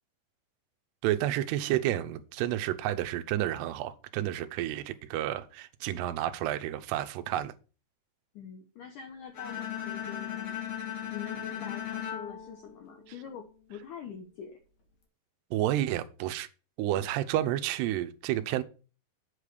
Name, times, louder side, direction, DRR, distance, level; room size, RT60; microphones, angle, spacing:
voice 1, 1.0-7.5 15.5-16.5 16.8-18.6, right 13 dB, 85° right, 2.7 m, -30 dB
voice 2, 8.3-10.6 11.1-14.6, left 7 dB, 65° left, 2.1 m, -44 dB
Bowed string instrument, 9.3-13.5, left 9 dB, 50° left, 2.7 m, -38 dB
8.1 x 5.0 x 6.6 m
omnidirectional pair, 4.7 m